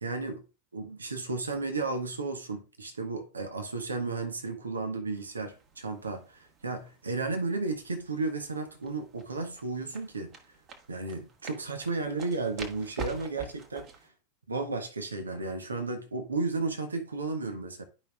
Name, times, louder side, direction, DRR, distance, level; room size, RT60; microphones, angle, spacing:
voice 1, 0.0-0.4 0.7-10.3 10.9-13.9 14.5-17.8, right 3 dB, 75° right, 1.2 m, -33 dB
sound 1, 5.1-14.1, right 5 dB, 30° right, 1.5 m, -47 dB
12.0 x 5.4 x 2.4 m
figure-of-eight pair, 90°, 0 cm